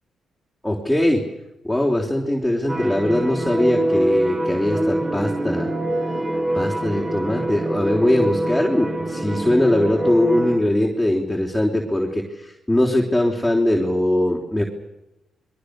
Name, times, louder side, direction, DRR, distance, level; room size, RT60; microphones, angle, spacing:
voice 1, 0.6-1.2 1.6-5.7 6.5-14.6, left 1 dB, ahead, -1 dB, 3.7 m, -21 dB
sound 1, 2.7-10.6, right 1 dB, 25° right, 5.3 m, -24 dB
29.5 x 22.0 x 6.7 m, 0.91 s
cardioid pair, 110°, 0 cm